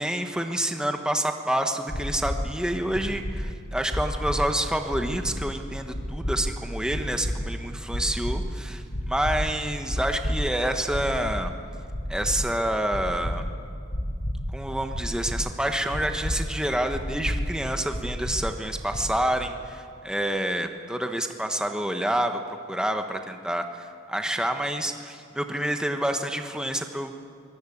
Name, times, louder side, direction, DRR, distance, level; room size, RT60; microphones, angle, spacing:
voice 1, 0.0-11.5 12.1-13.4 14.5-22.4 22.7-27.1, right 1 dB, 5° right, 5 dB, 1.1 m, -28 dB
sound 1, 1.9-2.3 2.9-3.3 3.9-4.3 4.9-5.4 5.9-6.3 6.9-7.3 7.9-8.3 8.9-9.3 9.9-10.3 10.9-11.3 11.9-12.3 12.9-13.3 13.9-14.3 14.9-15.3 15.9-16.3 16.9-17.3 17.9-18.3 18.9-19.2, equal, 75° left, 5.2 m, -30 dB
24.0 x 19.0 x 8.6 m, 2.4 s
head